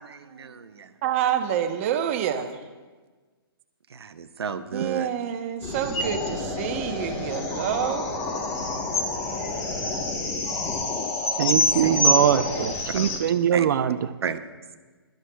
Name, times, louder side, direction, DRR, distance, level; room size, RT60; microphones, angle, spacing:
voice 1, 0.0-1.0 3.9-5.1 11.3-12.0 12.9-13.7 14.2-14.4, right 6 dB, 90° right, 8 dB, 0.8 m, -34 dB
voice 2, 1.0-2.6 4.7-8.1, right 9 dB, 35° right, 7 dB, 0.9 m, -27 dB
sound 1, 5.6-13.2, left 2 dB, 20° left, 1.1 m, -27 dB
voice 3, 11.4-14.0, right 9 dB, 50° right, 12 dB, 0.5 m, -22 dB
21.5 x 12.5 x 2.3 m, 1.4 s
hypercardioid pair, 155°, 13 cm